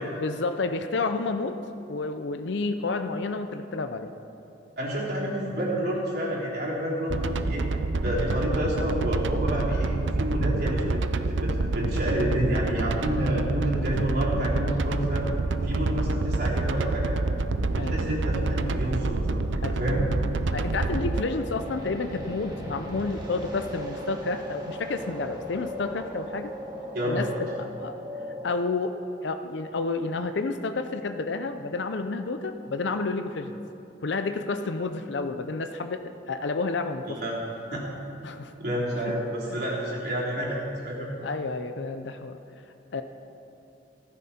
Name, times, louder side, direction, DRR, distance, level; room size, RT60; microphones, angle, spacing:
voice 1, 0.2-1.6 1.9-4.1 7.7-7.8 17.8-18.1 19.6-19.8 20.5-26.5 27.0-27.5 27.8-28.0 28.4-28.9 29.2-33.6 34.0-37.2 38.2-38.5 39.0-39.1 39.5-39.6 41.2-42.4 42.9-43.0, left 3 dB, 65° left, 8 dB, 0.6 m, -30 dB
voice 2, 4.8-7.7 8.0-15.3 15.6-17.2 17.7-20.0 26.9-27.3 37.1-37.4 37.7-37.8 38.6-41.1, equal, 55° right, -5 dB, 3.5 m, -29 dB
sound 1, 7.1-21.2, right 3 dB, 80° right, 0.6 m, -27 dB
sound 2, 20.7-28.5, equal, 25° right, 2.1 m, -37 dB
15.5 x 14.5 x 4.3 m, 2.8 s
head